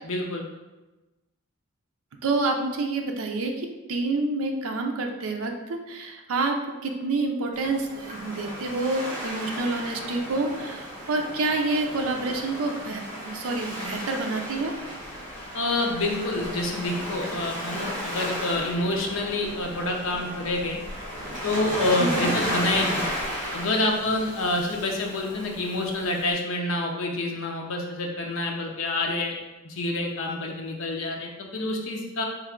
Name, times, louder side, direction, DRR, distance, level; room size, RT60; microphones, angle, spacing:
voice 1, 0.0-0.4 15.5-20.8 21.4-23.0 23.5-29.4 29.6-32.2, left 2 dB, 70° left, 0 dB, 0.6 m, -27 dB
voice 2, 2.2-14.7 22.0-22.3, right 3 dB, 80° right, 3 dB, 0.5 m, -28 dB
Waves surf, 7.5-26.3, equal, 35° right, 1.2 m, -34 dB
3.2 x 3.1 x 3.7 m, 1.1 s
head